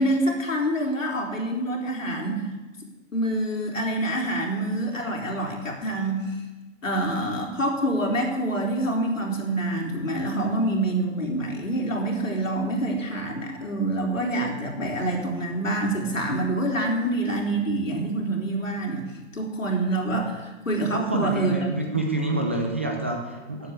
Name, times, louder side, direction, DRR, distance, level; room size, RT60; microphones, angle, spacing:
voice 1, 0.0-2.5 3.1-6.4 6.8-19.0 19.3-21.7, right 1 dB, 80° left, 0 dB, 3.8 m, -26 dB
voice 2, 20.9-23.7, right 2 dB, 10° right, 1 dB, 0.3 m, -27 dB
12.5 x 8.0 x 8.2 m, 1.2 s
figure-of-eight pair, 130°, 38 cm